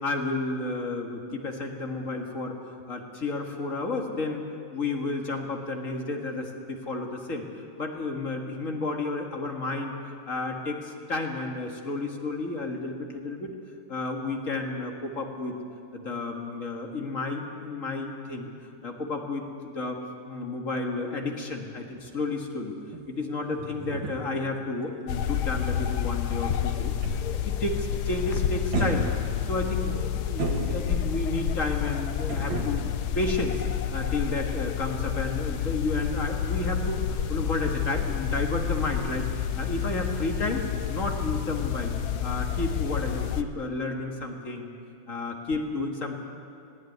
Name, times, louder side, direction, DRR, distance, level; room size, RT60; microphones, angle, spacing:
voice 1, 0.0-2.5 2.9-4.4 4.7-7.4 7.8-10.0 10.3-13.5 13.9-15.6 15.9-18.5 18.8-20.0 20.3-22.8 23.1-29.1 29.5-30.0 30.3-32.8 33.2-33.6 33.9-41.9 42.2-44.7 45.1-46.2, left 2 dB, 45° left, 2 dB, 2.2 m, -31 dB
sound 1, 21.9-27.6 27.9-28.2 28.7-31.2 32.3-34.2 34.5-34.7, right 2 dB, 80° right, 2.6 m, -35 dB
sound 2, 25.1-43.4, left 9 dB, 65° left, 1.3 m, -29 dB
18.5 x 17.0 x 9.4 m, 2.5 s
omnidirectional pair, 2.0 m